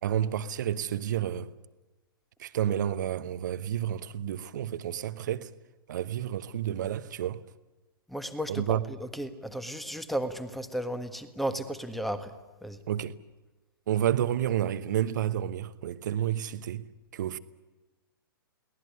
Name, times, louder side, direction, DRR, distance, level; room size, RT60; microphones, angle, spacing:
voice 1, 0.0-1.5 2.4-5.5 5.9-7.4 8.5-8.8 12.9-13.1 13.9-16.9 17.1-17.4, right 11 dB, 55° right, 1.1 m, -30 dB
voice 2, 8.1-12.3 12.6-12.8, right 1 dB, ahead, 1.5 m, -34 dB
23.0 x 18.5 x 9.9 m
figure-of-eight pair, 115°, 12 cm